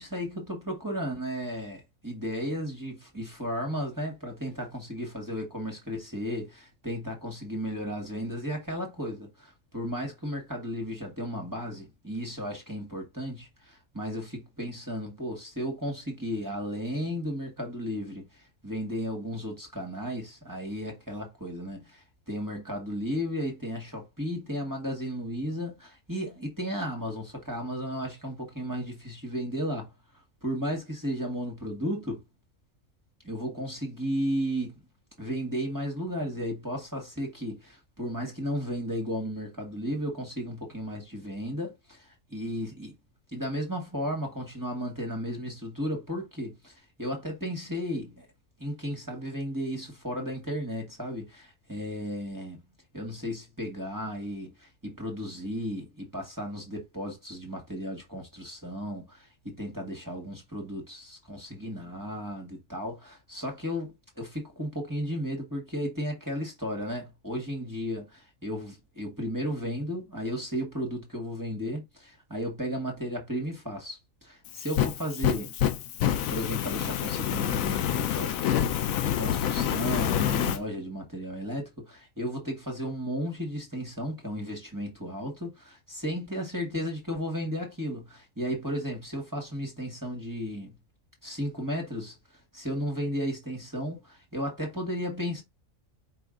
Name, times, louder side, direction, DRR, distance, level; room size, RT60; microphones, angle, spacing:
voice 1, 0.0-14.3 14.6-29.9 30.4-32.2 33.2-34.8 35.2-42.9 43.3-48.3 48.6-52.6 52.9-75.5 76.3-90.7 91.2-92.2 92.5-95.4, equal, 15° right, 1.3 m, -34 dB
Fire, 74.5-80.6, left 10 dB, 85° left, 1.0 m, -27 dB
5.0 x 2.7 x 3.6 m
omnidirectional pair, 1.4 m